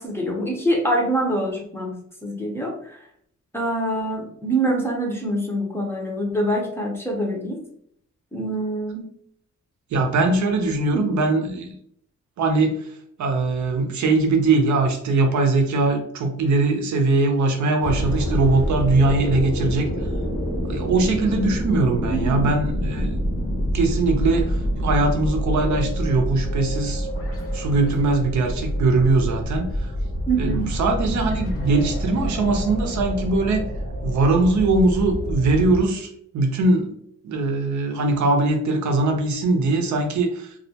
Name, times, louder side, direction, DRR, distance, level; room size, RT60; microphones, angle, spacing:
voice 1, 0.0-2.0 2.2-3.1 3.5-7.6 8.3-9.1 10.9-11.1 22.1-22.4 30.3-30.7, right 1 dB, 10° left, -2 dB, 0.6 m, -25 dB
voice 2, 9.9-11.7 12.4-12.9 13.2-19.9 20.7-23.1 23.7-27.3 27.5-29.9 30.4-33.7 34.0-36.9 37.2-40.5, right 3 dB, 75° right, 4 dB, 0.5 m, -21 dB
sound 1, 17.8-35.8, equal, 50° left, 0.8 m, -27 dB
2.3 x 2.1 x 2.7 m, 0.67 s
wide cardioid pair, 120°, 29 cm